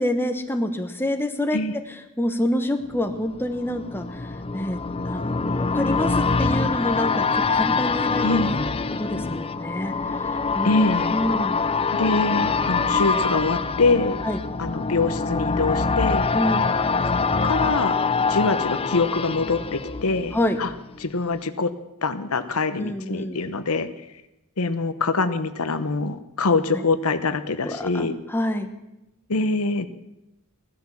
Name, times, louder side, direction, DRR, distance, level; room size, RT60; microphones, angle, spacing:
voice 1, 0.0-1.6 2.2-4.3 4.5-4.8 5.0-8.4 9.0-9.9 10.5-10.8 11.1-11.6 14.2-14.4 16.3-16.6 20.3-20.6 22.8-23.4 26.7-26.8 27.6-28.7, left 1 dB, 10° left, 7 dB, 1.1 m, -27 dB
sound 1, 2.9-20.7 21.1-21.2, left 4 dB, 25° left, 0.5 m, -24 dB
voice 2, 8.2-8.6 10.6-11.2 11.9-14.2 14.6-16.2 17.4-18.0 18.3-20.7 21.0-21.7 22.0-23.9 24.6-28.1 29.3-29.9, left 3 dB, 70° left, 11 dB, 1.0 m, -24 dB
17.0 x 12.0 x 7.3 m, 0.92 s
head